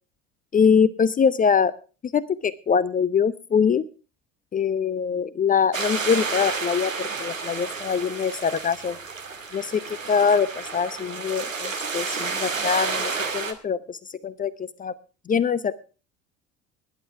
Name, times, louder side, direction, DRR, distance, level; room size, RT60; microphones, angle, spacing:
voice 1, 0.5-1.7 2.1-3.9 4.5-9.0 9.5-14.9 15.3-15.7, left 6 dB, 20° left, 20 dB, 0.7 m, -23 dB
sound 1, 5.7-13.5, right 4 dB, 85° right, 1.5 m, -30 dB
20.0 x 11.0 x 3.4 m, 0.34 s
figure-of-eight pair, 65°, 38 cm